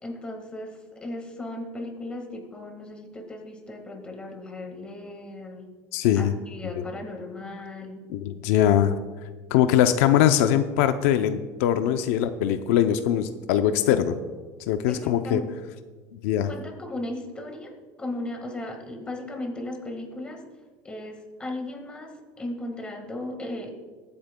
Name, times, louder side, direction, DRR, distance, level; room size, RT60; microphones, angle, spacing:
voice 1, 0.0-5.7 6.2-8.1 14.9-15.4 16.5-20.4 20.8-23.7, left 1 dB, 15° left, 3 dB, 1.7 m, -36 dB
voice 2, 5.9-6.3 8.1-9.0 9.5-14.2 14.7-15.4 16.1-16.5, left 10 dB, 85° left, 9 dB, 0.6 m, -22 dB
21.0 x 8.7 x 2.2 m, 1.4 s
cardioid pair, 150°, 8 cm